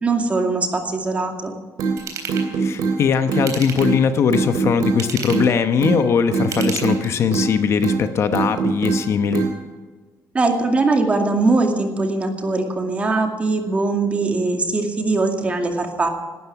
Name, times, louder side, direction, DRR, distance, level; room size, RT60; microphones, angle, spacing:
voice 1, 0.0-1.5 10.3-16.1, right 3 dB, 20° right, 4 dB, 2.3 m, -21 dB
sound 1, 1.8-1.9 2.3-3.0 3.3-3.5 3.8-4.0 4.3-5.0 5.3-5.5 5.8-6.0 6.3-7.0 7.3-7.5 7.8-8.0 8.3-9.0 9.3-9.5, right 5 dB, 80° right, 3.3 m, -21 dB
Ratchet pawl / Tools, 2.0-2.5 3.3-4.0 4.8-5.5 6.4-7.3 7.8-7.9, right 6 dB, 55° right, 3.7 m, -32 dB
voice 2, 2.6-9.4, left 6 dB, 45° left, 9 dB, 1.0 m, -20 dB
18.0 x 13.0 x 6.0 m, 1.4 s
cardioid pair, 170°, 6 cm